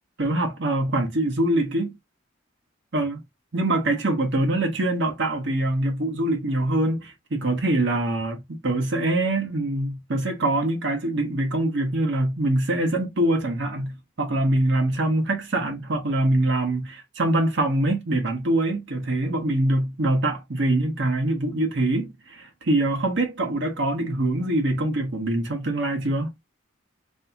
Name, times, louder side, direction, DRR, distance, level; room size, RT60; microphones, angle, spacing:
voice 1, 0.2-1.9 2.9-3.2 3.5-26.3, right 1 dB, 60° right, 0.8 m, -24 dB
3.4 x 2.7 x 2.7 m
head